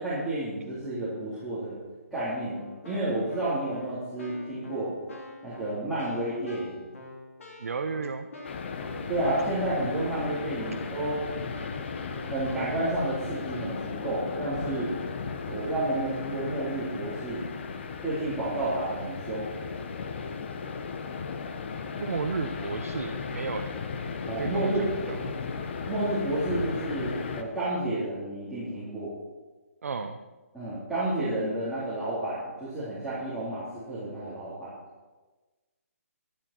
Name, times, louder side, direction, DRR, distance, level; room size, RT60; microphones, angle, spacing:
voice 1, 0.0-1.8 2.1-2.6 2.9-4.9 5.4-6.8 9.1-11.2 12.2-14.9 15.5-17.4 18.0-19.5 24.2-24.9 25.9-29.1 30.5-34.8, right 1 dB, ahead, -15 dB, 3.9 m, -31 dB
Keyboard (musical), 2.5-12.9, left 2 dB, 70° left, 3.9 m, -46 dB
voice 2, 7.6-8.3 22.0-23.8 24.3-25.4 29.8-30.2, right 5 dB, 70° right, 5 dB, 0.9 m, -33 dB
sound 1, 8.4-27.4, left 5 dB, 45° left, 1.2 m, -36 dB
13.0 x 12.0 x 4.5 m, 1.2 s
hypercardioid pair, 165°, 8 cm